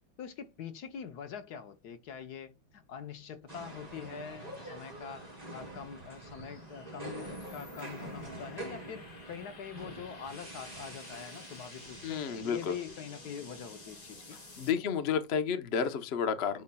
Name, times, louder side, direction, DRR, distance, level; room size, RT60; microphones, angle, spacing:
voice 1, 0.2-14.4, left 7 dB, 65° left, 1.2 m, -44 dB
sound 1, 2.7-14.7, left 3 dB, 85° left, 3.5 m, -54 dB
sound 2, 3.5-14.7, right 2 dB, 20° right, 2.5 m, -46 dB
voice 2, 12.0-12.7 14.6-16.6, left 7 dB, 50° left, 0.8 m, -31 dB
8.4 x 5.4 x 2.3 m
omnidirectional pair, 2.0 m